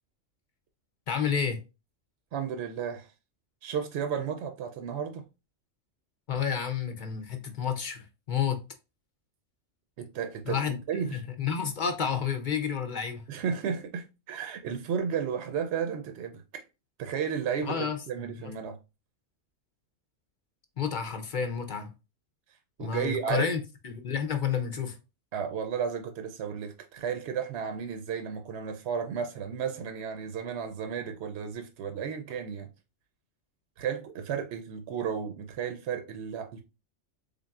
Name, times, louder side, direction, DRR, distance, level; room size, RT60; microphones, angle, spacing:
voice 1, 1.1-1.6 6.3-8.6 10.5-10.8 11.1-13.2 17.6-18.3 20.8-21.9 22.8-25.0, left 7 dB, 55° left, 0.6 m, -30 dB
voice 2, 2.3-3.1 3.6-5.2 10.0-11.2 13.3-16.6 17.0-18.8 22.8-23.5 25.3-32.7 33.8-36.6, right 7 dB, 70° right, 0.8 m, -33 dB
3.8 x 3.7 x 2.3 m
omnidirectional pair, 1.3 m